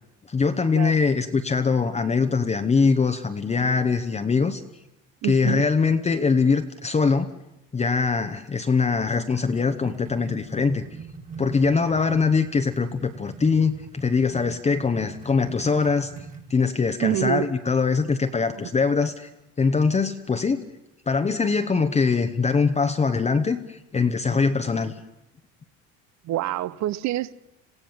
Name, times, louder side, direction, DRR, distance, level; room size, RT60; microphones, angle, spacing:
voice 1, 0.3-4.6 5.2-7.3 7.7-10.8 11.4-16.1 16.5-19.3 19.6-20.6 21.1-24.9, left 5 dB, 20° left, 1.0 m, -22 dB
voice 2, 5.2-5.6 17.0-17.6 26.2-27.3, right 14 dB, 50° right, 0.8 m, -26 dB
sound 1, 9.0-16.5, right 5 dB, 20° right, 2.1 m, -41 dB
27.0 x 16.0 x 7.3 m
cardioid pair, 120°, 35 cm